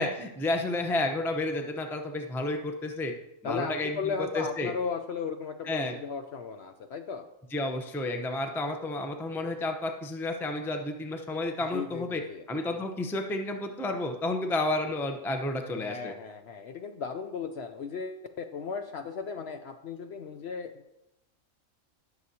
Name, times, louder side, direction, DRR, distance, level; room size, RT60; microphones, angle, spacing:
voice 1, 0.0-3.1 3.4-4.7 5.7-5.9 7.5-12.2 12.5-16.1, left 2 dB, 5° left, 5 dB, 0.5 m, -31 dB
voice 2, 3.4-7.3 11.7-12.4 15.8-20.7, left 5 dB, 60° left, 7 dB, 0.7 m, -36 dB
18.5 x 6.5 x 2.8 m, 0.88 s
omnidirectional pair, 1.4 m